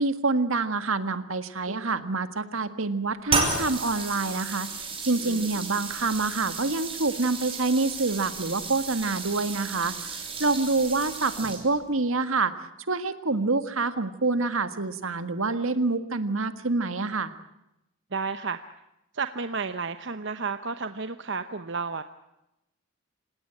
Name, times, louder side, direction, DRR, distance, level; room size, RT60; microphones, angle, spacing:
voice 1, 0.0-12.5 12.9-17.3, right 3 dB, 75° right, 11 dB, 1.7 m, -27 dB
sound 1, 3.3-11.9, right 4 dB, 25° right, 5.7 m, -33 dB
voice 2, 18.1-18.6 19.1-22.0, right 4 dB, 55° right, 10 dB, 1.0 m, -32 dB
28.0 x 18.0 x 8.9 m, 0.90 s
head